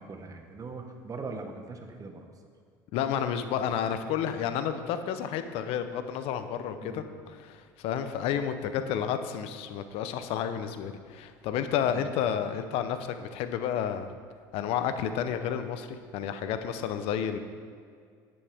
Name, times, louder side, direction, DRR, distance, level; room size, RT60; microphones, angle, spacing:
voice 1, 0.0-2.2 6.7-7.1 11.9-12.1, right 3 dB, 35° right, 4 dB, 1.5 m, -41 dB
voice 2, 2.9-14.1 14.5-17.4, left 8 dB, 65° left, 9 dB, 0.8 m, -31 dB
10.5 x 10.0 x 3.6 m, 2.2 s
supercardioid pair, 80°, 11 cm